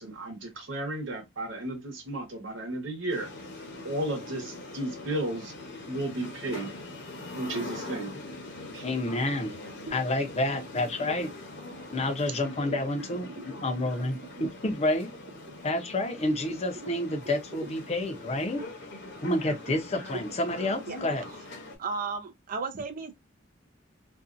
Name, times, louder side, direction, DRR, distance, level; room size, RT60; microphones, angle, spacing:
voice 1, 0.0-3.3 3.8-5.5 5.9-6.7 7.3-8.2 8.7-8.8, right 1 dB, 75° right, 1.0 m, -33 dB
sound 1, 3.1-21.8, left 2 dB, 60° left, 0.9 m, -43 dB
voice 2, 8.8-9.6 9.9-11.3 11.9-15.1 15.6-18.6 19.2-21.2, left 1 dB, 35° left, 0.6 m, -29 dB
voice 3, 13.1-13.7 14.4-14.5 15.5-15.6 16.5-16.6 16.8-16.9 17.2-17.3 17.6-17.7 19.7-19.8 20.7-21.0 21.8-23.1, right 4 dB, 45° right, 0.5 m, -36 dB
2.6 x 2.3 x 2.5 m
head